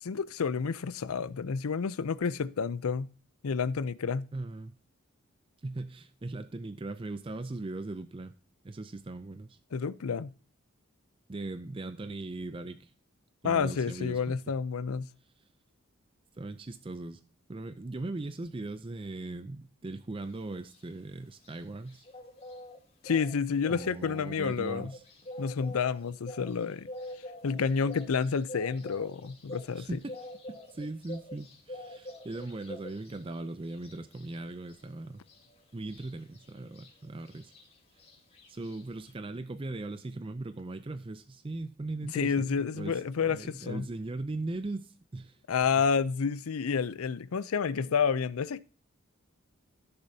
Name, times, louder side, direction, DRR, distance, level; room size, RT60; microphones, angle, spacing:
voice 1, 0.0-3.1 3.4-4.3 9.7-10.3 13.4-15.1 23.0-24.9 25.4-26.9 27.4-30.0 42.1-43.9 45.5-48.6, left 6 dB, 85° left, 0.5 m, -30 dB
voice 2, 4.3-4.8 5.6-8.3 8.6-9.6 11.3-12.9 13.4-14.4 16.4-17.2 17.5-22.1 23.7-25.0 29.8-30.2 30.5-35.2 35.7-37.5 38.5-45.4, right 2 dB, 25° right, 0.4 m, -39 dB
sound 1, 20.3-39.1, left 1 dB, 30° left, 2.9 m, -47 dB
15.0 x 6.9 x 2.8 m
head